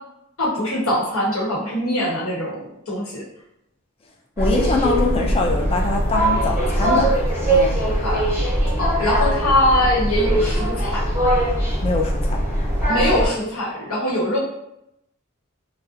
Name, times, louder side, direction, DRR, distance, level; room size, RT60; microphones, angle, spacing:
voice 1, 0.4-3.2 7.8-8.3 8.8-11.0 12.9-14.4, left 1 dB, 80° left, -5 dB, 0.9 m, -22 dB
voice 2, 4.4-7.1 7.5-7.8 11.8-12.4, left 3 dB, 25° left, 1 dB, 0.3 m, -23 dB
sound 1, 4.4-13.3, right 1 dB, 10° right, 0.9 m, -21 dB
2.4 x 2.0 x 2.6 m, 0.80 s
head